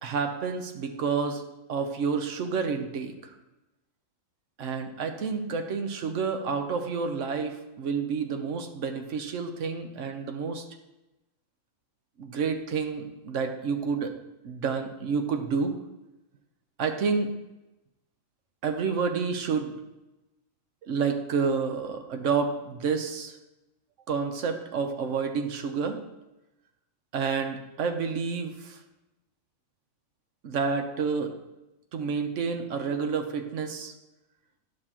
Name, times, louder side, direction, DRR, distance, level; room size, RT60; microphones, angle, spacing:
voice 1, 0.0-1.4 1.7-3.1 4.6-10.6 12.2-14.1 14.4-15.8 16.8-17.4 18.6-19.7 20.9-23.3 24.1-26.0 27.1-28.8 30.4-31.3 31.9-33.9, right 5 dB, 70° right, 6 dB, 1.1 m, -29 dB
10.5 x 6.4 x 2.9 m, 0.99 s
omnidirectional pair, 1.3 m